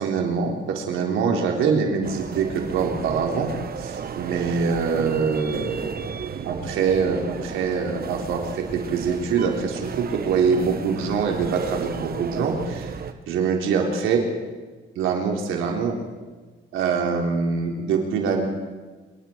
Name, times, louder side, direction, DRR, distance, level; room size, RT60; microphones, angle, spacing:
voice 1, 0.0-3.5 3.8-6.1 6.4-12.9 13.3-14.2 15.0-16.0 16.7-18.5, right 5 dB, 90° right, 1 dB, 3.8 m, -24 dB
sound 1, 2.0-13.1, right 6 dB, 50° right, 1.5 m, -34 dB
26.0 x 23.5 x 4.6 m, 1.3 s
cardioid pair, 90°, 20 cm